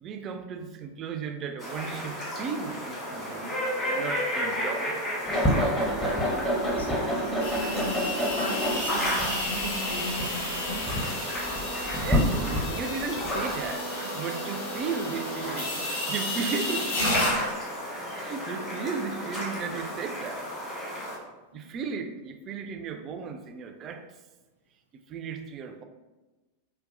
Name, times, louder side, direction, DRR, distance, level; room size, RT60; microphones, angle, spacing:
voice 1, 0.0-5.8 11.7-17.1 18.1-20.5 21.5-24.0 25.1-25.8, right 5 dB, 30° right, 6 dB, 0.3 m, -35 dB
sound 1, 1.6-21.2, equal, 30° left, 1.3 m, -34 dB
sound 2, 5.2-13.7, equal, 15° left, 0.7 m, -28 dB
voice 2, 6.2-10.9 21.5-21.7, equal, 75° left, 1 dB, 0.6 m, -38 dB
sound 3, 7.4-17.3, left 1 dB, 60° left, 1.1 m, -33 dB
5.2 x 2.2 x 2.5 m, 1.1 s
figure-of-eight pair, 90°, 0 cm